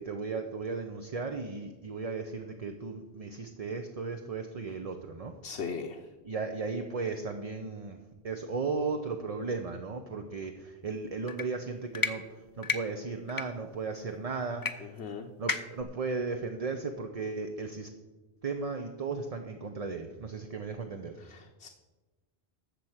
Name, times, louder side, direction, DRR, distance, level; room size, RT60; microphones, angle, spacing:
voice 1, 0.0-5.3 6.2-15.0 15.4-17.9 18.4-21.2, right 4 dB, 40° right, 5 dB, 0.7 m, -36 dB
voice 2, 5.4-6.0 15.0-15.3 21.2-21.7, left 5 dB, 80° left, 2 dB, 1.0 m, -38 dB
sound 1, 11.3-11.5 11.9-12.1 12.6-12.8 13.3-13.5 14.6-14.7 15.0-15.1 15.5-15.8, left 4 dB, 30° left, 0.4 m, -30 dB
13.0 x 4.5 x 8.0 m, 1.2 s
omnidirectional pair, 1.1 m